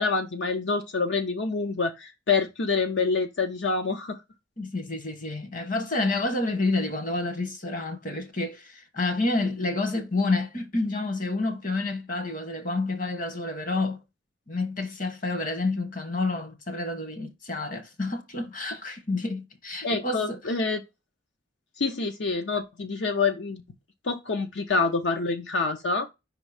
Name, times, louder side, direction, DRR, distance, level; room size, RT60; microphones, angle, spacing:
voice 1, 0.0-4.2 19.8-20.8 21.8-23.6 24.0-26.1, left 4 dB, 80° left, 0.7 m, -27 dB
voice 2, 4.6-14.0 14.5-20.6, left 2 dB, 50° left, 1.3 m, -29 dB
5.4 x 3.7 x 4.9 m
head